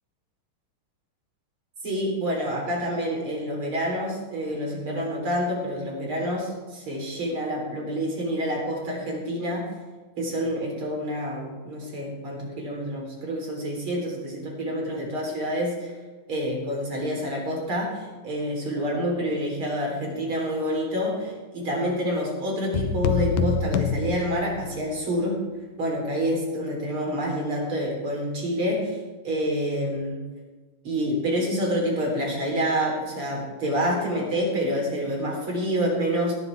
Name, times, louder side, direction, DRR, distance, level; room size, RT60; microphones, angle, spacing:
voice 1, 1.8-9.7 10.2-15.9 16.3-25.4 25.8-29.0 29.2-30.2 30.8-36.4, equal, 35° right, -1 dB, 4.4 m, -27 dB
sound 1, 22.7-25.0, left 6 dB, 80° left, 2.3 m, -26 dB
18.5 x 11.0 x 3.5 m, 1.4 s
omnidirectional pair, 4.0 m